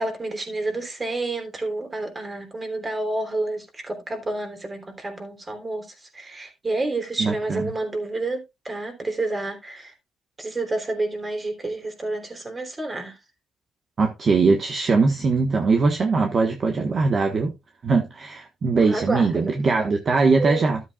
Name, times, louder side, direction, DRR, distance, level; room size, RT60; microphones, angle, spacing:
voice 1, 0.0-5.8 6.1-9.9 10.4-13.1 18.8-19.5 20.4-20.7, right 2 dB, 25° right, 3.3 m, -29 dB
voice 2, 7.2-7.7 14.0-17.5 17.8-20.8, right 4 dB, 45° right, 1.4 m, -21 dB
13.0 x 7.9 x 2.4 m
cardioid pair, 90°, 0 cm